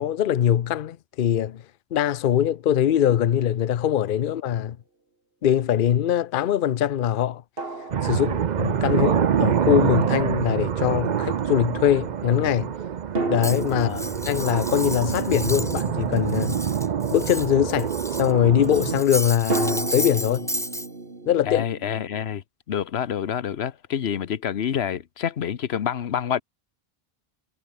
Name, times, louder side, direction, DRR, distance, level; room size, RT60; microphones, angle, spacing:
voice 1, 0.0-1.6 1.9-4.8 5.4-7.4 8.0-12.7 13.3-13.9 14.2-16.6 17.1-17.9 18.2-20.5 21.3-21.6, left 10 dB, 60° left, 0.8 m, -22 dB
sound 1, 3.9-4.1 7.6-9.1 13.2-16.8 19.5-22.3, right 3 dB, 65° right, 3.3 m, -33 dB
sound 2, 7.9-19.0, right 8 dB, 50° right, 0.7 m, -26 dB
Cutlery silverware, 13.4-15.9 16.2-18.3 18.6-20.9, equal, 5° left, 1.6 m, -33 dB
voice 2, 13.7-14.2 21.5-26.4, left 8 dB, 90° left, 1.1 m, -28 dB
omnidirectional pair, 1.0 m